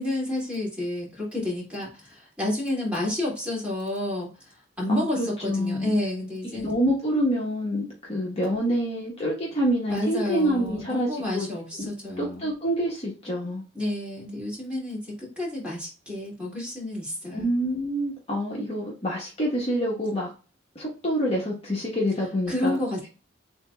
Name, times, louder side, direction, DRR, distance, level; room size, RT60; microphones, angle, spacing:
voice 1, 0.0-6.7 9.9-12.5 13.7-17.5 22.5-23.1, left 1 dB, 5° right, -4 dB, 2.6 m, -30 dB
voice 2, 4.9-6.0 6.5-11.5 11.8-11.9 12.2-13.6 17.3-20.3 20.7-22.7, equal, 30° left, -3 dB, 1.2 m, -27 dB
7.3 x 2.9 x 2.4 m, 0.33 s
head